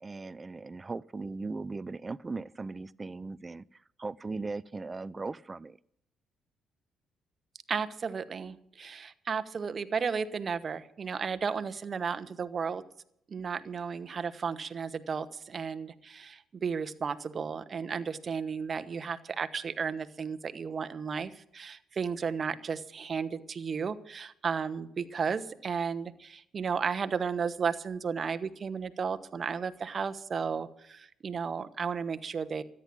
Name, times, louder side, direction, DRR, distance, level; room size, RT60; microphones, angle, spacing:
voice 1, 0.0-5.8, right 3 dB, 30° right, 0.5 m, -38 dB
voice 2, 7.7-12.8 13.3-32.6, right 6 dB, 45° right, 1.1 m, -34 dB
13.5 x 10.0 x 8.5 m
supercardioid pair, 70°, 0 cm